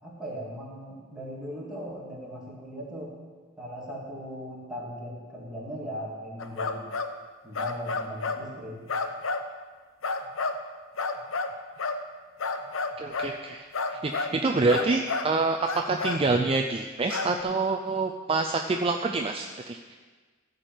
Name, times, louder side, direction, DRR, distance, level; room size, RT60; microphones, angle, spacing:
voice 1, 0.0-3.2 3.6-6.9 7.4-8.8, equal, 5° right, -6 dB, 2.8 m, -38 dB
sound 1, 6.4-7.1 7.6-8.4 8.9-9.5 10.0-10.6 11.0-12.0 12.4-13.4 13.7-14.4 14.7-15.3 15.6-16.2 17.1-17.3, left 4 dB, 80° left, 0.8 m, -30 dB
voice 2, 13.0-20.0, right 3 dB, 30° right, 3 dB, 0.5 m, -27 dB
14.0 x 5.2 x 7.5 m, 1.4 s
head